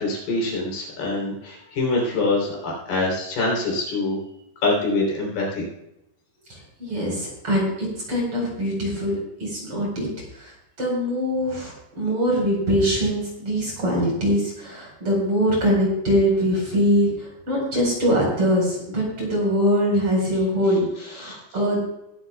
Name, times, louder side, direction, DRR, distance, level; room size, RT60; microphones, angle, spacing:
voice 1, 0.0-4.2 4.6-5.7 21.2-21.3, left 2 dB, 60° left, -2 dB, 5.4 m, -24 dB
voice 2, 6.5-10.1 10.3-21.9, equal, 30° right, -2 dB, 5.2 m, -23 dB
21.0 x 12.0 x 2.4 m, 0.84 s
omnidirectional pair, 5.2 m